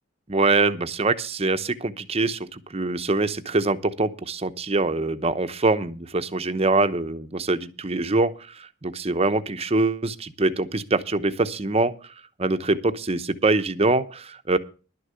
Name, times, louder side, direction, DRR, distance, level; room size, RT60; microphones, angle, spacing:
voice 1, 0.3-11.9 12.4-14.6, right 3 dB, 30° right, 11 dB, 0.8 m, -24 dB
12.0 x 6.6 x 7.6 m, 0.35 s
head